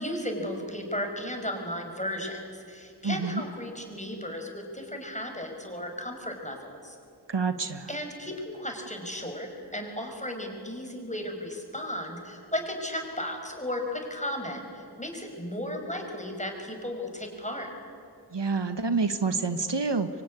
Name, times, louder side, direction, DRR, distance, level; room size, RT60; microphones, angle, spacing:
voice 1, 0.0-7.0 7.9-17.7, left 1 dB, 15° left, 3 dB, 5.5 m, -35 dB
voice 2, 3.0-3.4 7.3-7.9 18.3-20.2, right 4 dB, 75° right, 9 dB, 1.4 m, -28 dB
25.0 x 24.0 x 9.8 m, 2.4 s
wide cardioid pair, 40°, 42 cm